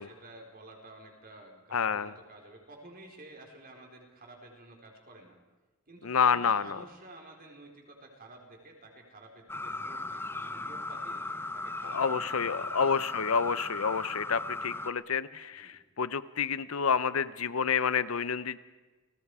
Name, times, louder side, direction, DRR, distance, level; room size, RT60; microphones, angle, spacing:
voice 1, 0.0-5.4 5.9-13.0 15.5-15.7, right 2 dB, 45° right, 2 dB, 4.3 m, -51 dB
voice 2, 1.7-2.1 6.0-6.8 11.8-18.6, left 6 dB, 75° left, 16 dB, 0.7 m, -29 dB
sound 1, 9.5-14.9, left 2 dB, 10° left, 0.6 m, -37 dB
29.5 x 20.0 x 4.9 m, 1.2 s
head